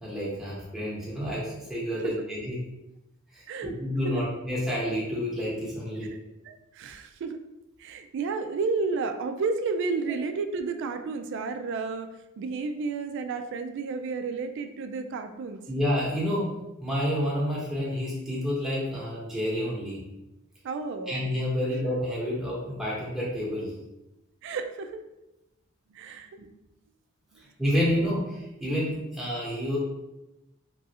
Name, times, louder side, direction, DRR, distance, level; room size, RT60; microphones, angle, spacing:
voice 1, 0.0-2.6 3.3-6.1 15.7-16.5 16.8-20.0 21.1-23.7 27.6-29.8, equal, ahead, -7 dB, 0.9 m, -29 dB
voice 2, 6.4-7.4 7.8-12.1 12.4-15.6 20.6-21.3 24.4-25.0 25.9-26.5 27.3-27.4 27.9-28.1, right 4 dB, 60° right, 7 dB, 0.3 m, -32 dB
3.0 x 2.4 x 2.7 m, 0.93 s
head